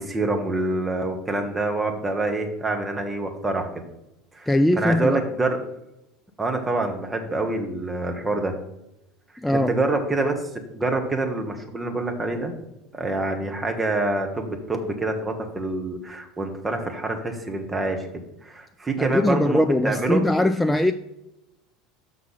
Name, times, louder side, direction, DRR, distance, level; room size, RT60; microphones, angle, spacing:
voice 1, 0.0-3.7 4.3-4.5 4.8-5.6 6.4-8.5 9.5-10.3 10.7-12.5 12.9-18.1 18.4-20.2, right 2 dB, 15° right, 3 dB, 1.4 m, -26 dB
voice 2, 4.5-5.2 9.4-9.7 19.0-20.9, left 1 dB, 5° left, 8 dB, 0.3 m, -21 dB
6.0 x 5.9 x 5.6 m, 0.89 s
figure-of-eight pair, 70°, 0 cm